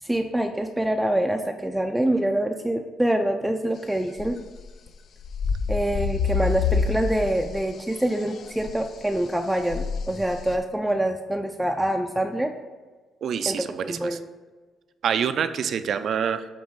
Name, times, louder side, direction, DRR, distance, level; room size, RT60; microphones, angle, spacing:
voice 1, 0.0-4.4 5.7-12.5 13.5-14.2, right 1 dB, 5° right, 4 dB, 0.4 m, -25 dB
sound 1, 4.2-4.9 5.2-7.7 8.0-8.8 9.7-10.5, left 5 dB, 60° left, 0.4 m, -27 dB
voice 2, 13.2-14.2 15.0-16.5, right 7 dB, 65° right, 11 dB, 0.4 m, -26 dB
8.5 x 3.0 x 5.4 m, 1.3 s
cardioid pair, 90°, 0 cm